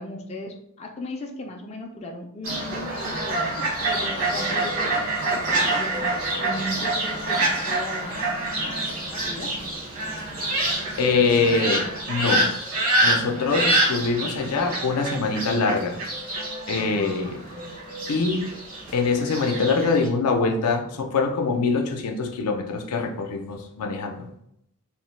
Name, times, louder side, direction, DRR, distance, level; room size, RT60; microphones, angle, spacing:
voice 1, 0.0-9.6 13.5-14.1 16.7-18.0, left 1 dB, 30° left, 2 dB, 0.3 m, -38 dB
Fowl, 2.4-20.1, right 2 dB, 65° right, 1.2 m, -26 dB
voice 2, 11.0-12.5 13.0-16.0 16.7-17.4 18.1-18.4 18.9-24.3, left 4 dB, 85° left, 4 dB, 0.5 m, -24 dB
2.9 x 2.1 x 3.1 m, 0.74 s
head